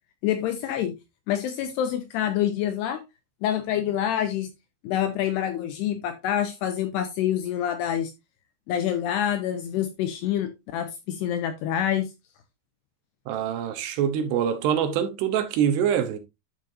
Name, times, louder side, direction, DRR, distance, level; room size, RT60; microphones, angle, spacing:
voice 1, 0.2-0.9 1.3-3.0 3.4-4.5 4.8-8.1 8.7-12.1, left 10 dB, 80° left, 2.5 m, -26 dB
voice 2, 13.3-16.2, right 9 dB, 75° right, 2.7 m, -24 dB
12.0 x 6.3 x 2.6 m
omnidirectional pair, 5.4 m